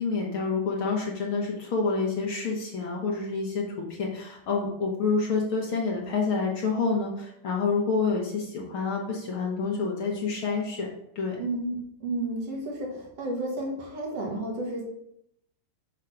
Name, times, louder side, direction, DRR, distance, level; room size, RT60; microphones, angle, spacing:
voice 1, 0.0-10.9 11.1-11.4, left 4 dB, 65° left, -1 dB, 1.3 m, -28 dB
voice 2, 11.4-14.8, right 2 dB, 55° right, -1 dB, 2.0 m, -32 dB
6.4 x 3.7 x 5.8 m, 0.75 s
omnidirectional pair, 3.8 m